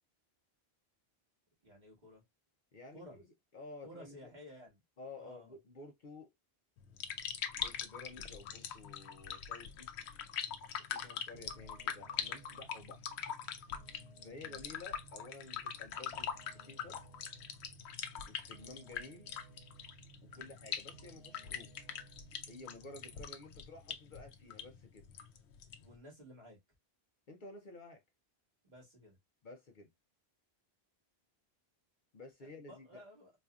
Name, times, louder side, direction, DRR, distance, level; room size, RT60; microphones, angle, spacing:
voice 1, 1.6-2.2 2.9-3.2 3.8-4.8 5.2-5.5 10.9-11.2 14.3-14.6 20.3-20.6 25.8-26.6 28.6-29.2 32.4-33.3, equal, 45° right, 1.7 m, -55 dB
voice 2, 2.7-3.2 3.5-4.3 5.0-6.3 7.5-10.1 10.9-13.1 14.2-16.3 16.5-17.0 18.3-19.3 20.2-21.7 22.5-25.1 27.3-28.0 29.4-29.9 32.1-33.0, left 2 dB, 55° left, 0.7 m, -52 dB
sound 1, 6.8-25.9, left 8 dB, 85° left, 0.8 m, -43 dB
sound 2, 11.3-23.3, right 8 dB, 75° right, 1.0 m, -60 dB
4.1 x 2.6 x 2.3 m
omnidirectional pair, 1.1 m